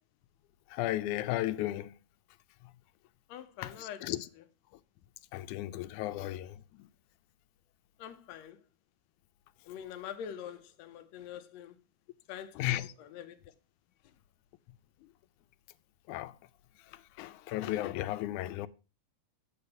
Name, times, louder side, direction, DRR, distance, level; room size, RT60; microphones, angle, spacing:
voice 1, 0.7-1.9 3.6-4.3 5.3-6.6 12.6-12.9 16.1-16.3 17.2-18.7, left 15 dB, 90° left, 2.1 m, -34 dB
voice 2, 3.3-4.1 8.0-8.6 9.7-11.8 12.3-13.4, left 9 dB, 70° left, 2.0 m, -44 dB
8.5 x 7.7 x 5.7 m
omnidirectional pair, 3.4 m